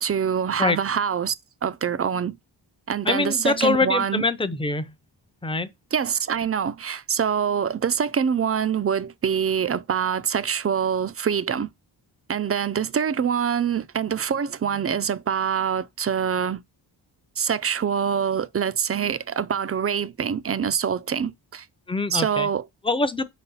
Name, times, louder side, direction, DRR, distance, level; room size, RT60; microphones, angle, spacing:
voice 1, 0.0-1.3 1.6-2.4 2.9-4.2 5.9-11.7 12.3-16.6 17.4-21.7 22.1-22.7, right 7 dB, 35° right, 0.4 m, -25 dB
voice 2, 3.1-4.9 5.4-5.7 21.9-22.5 22.8-23.3, left 3 dB, 10° left, 0.6 m, -24 dB
5.1 x 4.1 x 5.4 m
wide cardioid pair, 110°, 46 cm